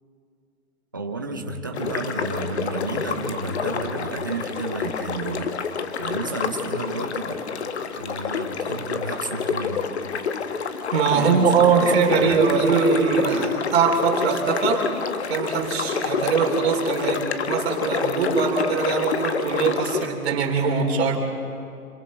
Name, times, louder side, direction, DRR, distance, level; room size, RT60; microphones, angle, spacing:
voice 1, 0.9-5.5 6.0-7.7 8.0-9.9 11.0-12.4, right 3 dB, 15° right, 3 dB, 0.5 m, -32 dB
sound 1, 1.7-20.1, left 6 dB, 50° left, 1.1 m, -28 dB
voice 2, 10.9-14.9 15.3-21.2, right 5 dB, 45° right, 2 dB, 3.5 m, -21 dB
26.5 x 25.0 x 4.2 m, 2.5 s
hypercardioid pair, 160°, 44 cm